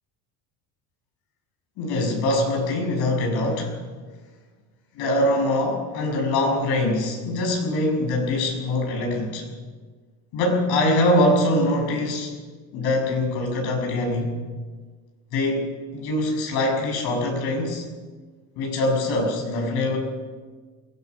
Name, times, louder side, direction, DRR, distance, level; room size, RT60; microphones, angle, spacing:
voice 1, 1.8-3.7 5.0-9.5 10.3-12.4 12.7-14.4 15.3-17.9 18.6-20.0, left 1 dB, 70° left, 2 dB, 6.9 m, -23 dB
22.5 x 17.5 x 6.7 m, 1.4 s
cardioid pair, 120°, 39 cm